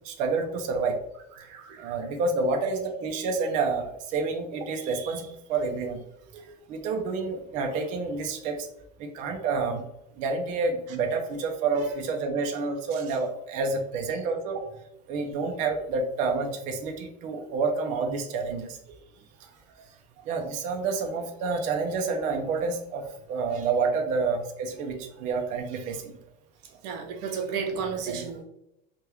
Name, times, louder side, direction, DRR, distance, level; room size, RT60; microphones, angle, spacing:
voice 1, 0.1-1.0 1.8-6.0 6.7-8.6 9.0-9.8 10.2-14.6 15.1-18.7 20.3-23.0 23.3-26.1 28.1-28.4, right 4 dB, 35° right, 3 dB, 0.4 m, -29 dB
voice 2, 1.4-2.0 6.3-6.4 26.8-28.4, right 6 dB, 70° right, 4 dB, 0.8 m, -33 dB
3.4 x 2.2 x 2.9 m, 0.83 s
cardioid pair, 175°, 21 cm